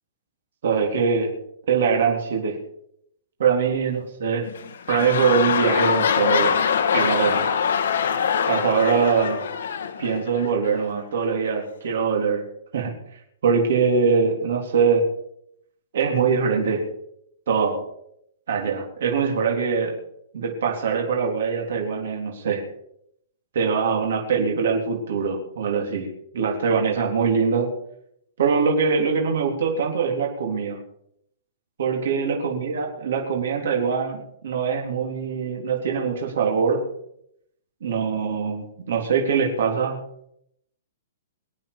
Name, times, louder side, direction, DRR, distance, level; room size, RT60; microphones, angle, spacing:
voice 1, 0.6-1.3 1.7-2.6 3.4-4.5 4.9-6.6 6.9-7.4 8.5-9.4 10.0-12.4 12.7-12.9 13.4-15.1 15.9-16.8 17.5-17.8 18.5-19.9 20.3-22.6 23.5-26.1 26.3-27.7 28.4-30.8 31.8-36.8 37.8-40.0, right 5 dB, 55° right, 0 dB, 3.8 m, -23 dB
sound 1, 4.4-10.8 11.5-11.6, left 7 dB, 60° left, 1.4 m, -23 dB
24.0 x 8.8 x 5.3 m, 0.74 s
hypercardioid pair, 180°, 0 cm